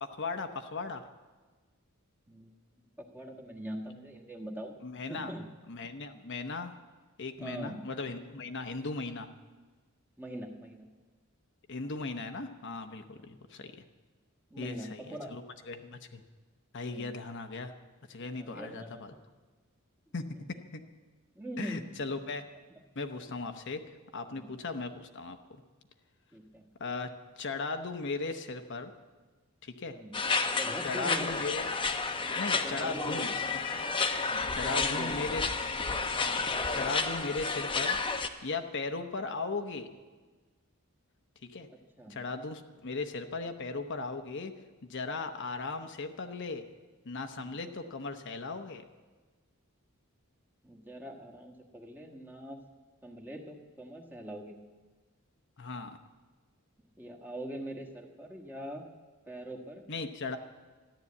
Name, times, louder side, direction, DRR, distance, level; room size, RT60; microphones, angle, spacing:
voice 1, 0.0-1.1 4.8-5.3 5.7-6.7 7.2-9.3 11.7-13.7 14.6-16.2 16.7-17.7 18.1-19.1 20.1-20.3 20.7-20.8 21.6-22.4 23.0-23.8 24.1-25.6 26.8-28.9 29.6-30.0 30.8-31.7 32.3-33.3 34.3-35.5 36.3-36.5 36.7-38.0 38.4-39.9 41.4-41.7 42.1-44.5 44.8-46.6 47.0-48.8 55.6-56.0 59.9-60.4, left 3 dB, 55° left, 6 dB, 0.9 m, -37 dB
voice 2, 2.3-4.7 5.1-5.5 7.3-7.9 10.2-10.9 13.2-13.3 14.5-15.3 16.8-17.1 18.3-19.1 20.1-20.2 21.3-22.1 24.3-24.5 26.3-26.6 29.9-30.2 30.6-31.5 32.3-32.4 32.6-33.2 34.5-35.2 41.7-42.2 47.4-47.6 50.6-52.6 53.0-54.5 57.0-58.8 59.3-59.9, right 1 dB, 10° right, 0 dB, 1.4 m, -42 dB
sound 1, 30.1-38.3, left 4 dB, 25° left, 0.8 m, -31 dB
13.5 x 11.0 x 8.4 m, 1.3 s
head